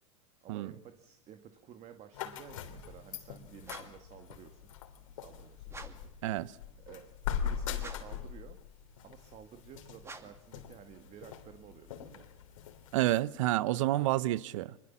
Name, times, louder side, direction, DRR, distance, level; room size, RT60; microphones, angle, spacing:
voice 1, 0.4-4.7 5.1-5.9 6.4-6.6 6.9-8.6 9.0-12.3 13.9-14.3, right 9 dB, 40° right, 2.0 m, -53 dB
sound 1, 2.1-13.2, left 8 dB, 80° left, 3.3 m, -42 dB
sound 2, 3.6-4.1 5.7-6.1 7.8-8.3 10.0-10.5, right 3 dB, 15° right, 2.5 m, -48 dB
voice 2, 12.9-14.7, right 16 dB, 70° right, 0.9 m, -29 dB
25.5 x 22.0 x 7.4 m
hypercardioid pair, 105°, 17 cm